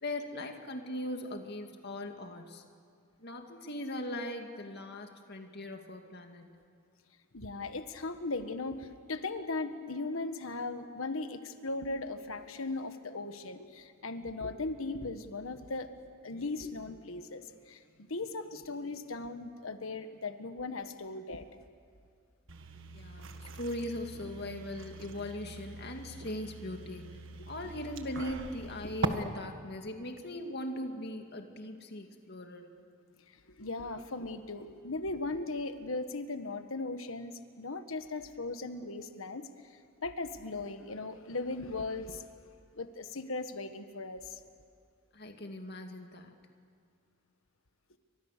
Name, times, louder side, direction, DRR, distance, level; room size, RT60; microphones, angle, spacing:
voice 1, 0.0-2.6 3.2-6.5 22.9-27.2 27.5-32.7 45.1-46.3, left 1 dB, 50° left, 4 dB, 2.3 m, -40 dB
voice 2, 7.3-15.9 16.2-21.5 27.4-27.5 28.8-28.9 33.5-42.2 42.7-44.4, left 3 dB, 85° left, 9 dB, 1.4 m, -38 dB
sound 1, 22.5-29.1, right 2 dB, 70° right, 1.6 m, -41 dB
29.5 x 25.0 x 6.7 m, 2.3 s
head